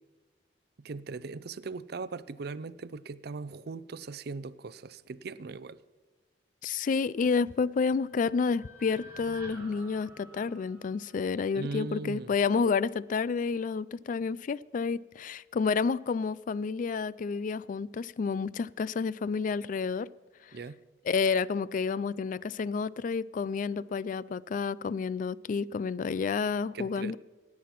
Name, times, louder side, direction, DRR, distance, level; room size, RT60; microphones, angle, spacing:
voice 1, 0.8-5.8 11.5-12.3 20.5-20.8 26.7-27.2, right 4 dB, 60° right, 0.5 m, -39 dB
voice 2, 6.6-20.1 21.1-27.2, left 5 dB, 45° left, 0.3 m, -30 dB
sound 1, 7.6-11.9, equal, 15° right, 2.5 m, -51 dB
17.5 x 8.5 x 5.9 m
head